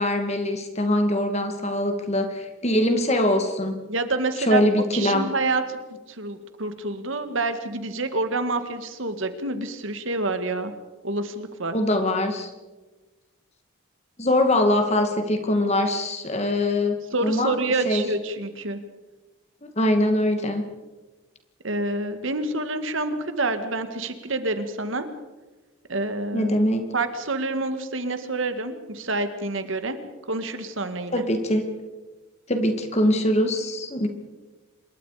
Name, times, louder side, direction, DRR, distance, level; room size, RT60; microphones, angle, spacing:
voice 1, 0.0-3.8 4.5-5.3 11.7-12.5 14.2-17.5 17.9-18.0 19.6-20.6 26.3-26.9 31.1-31.7 32.5-34.1, left 1 dB, 30° left, 6 dB, 2.3 m, -23 dB
voice 2, 3.9-4.6 4.9-5.8 6.1-10.7 11.0-11.8 17.1-18.8 21.6-25.1 25.9-26.5 26.9-30.0 30.3-31.3, right 2 dB, 65° right, 9 dB, 2.0 m, -27 dB
26.5 x 22.5 x 5.1 m, 1.2 s
head